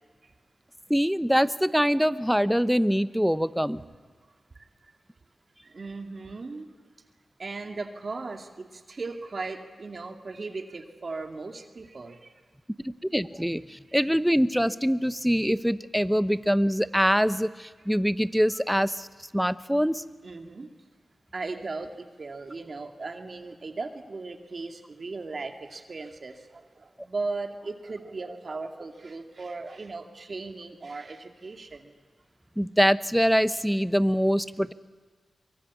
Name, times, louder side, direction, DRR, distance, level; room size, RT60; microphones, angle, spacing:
voice 1, 0.9-3.8 12.8-19.1 19.3-20.0 32.6-34.7, equal, ahead, 14 dB, 0.9 m, -24 dB
voice 2, 5.6-6.7 7.4-12.3 20.2-20.7 21.3-31.9, right 3 dB, 50° right, 5 dB, 2.4 m, -37 dB
24.0 x 23.0 x 8.5 m, 1.5 s
cardioid pair, 65°, 0 cm